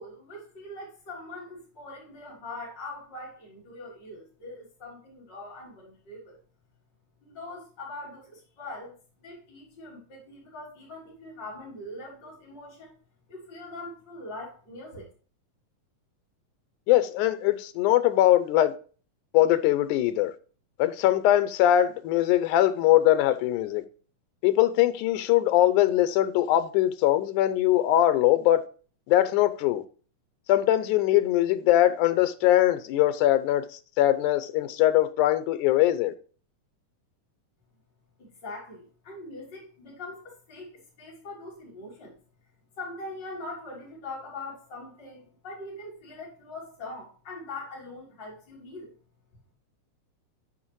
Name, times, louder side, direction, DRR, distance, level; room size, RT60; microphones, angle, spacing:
voice 1, 0.0-6.4 7.2-9.0 9.2-12.9 13.3-15.1 38.2-42.2 42.8-48.9, left 2 dB, 35° left, 3.9 m, -42 dB
voice 2, 16.9-18.7 19.3-20.3 20.8-23.8 24.4-28.6 29.1-29.8 30.5-33.7 34.0-36.1, left 13 dB, 85° left, 2.1 m, -22 dB
9.9 x 5.0 x 3.0 m
omnidirectional pair, 3.5 m